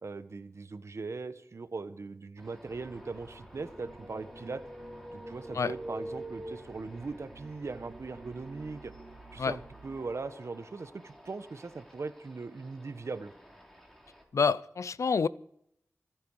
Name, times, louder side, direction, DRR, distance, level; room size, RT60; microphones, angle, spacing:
voice 1, 0.0-4.6 5.1-8.9 9.3-13.3, right 4 dB, 65° right, 1.2 m, -40 dB
sound 1, 2.4-14.2, equal, 5° left, 4.3 m, -56 dB
sound 2, 2.6-10.0, right 2 dB, 45° right, 4.3 m, -51 dB
sound 3, 3.7-7.3, right 1 dB, 15° right, 1.7 m, -44 dB
voice 2, 14.3-15.3, left 5 dB, 80° left, 0.5 m, -27 dB
25.5 x 9.5 x 4.8 m
wide cardioid pair, 65°, 5 cm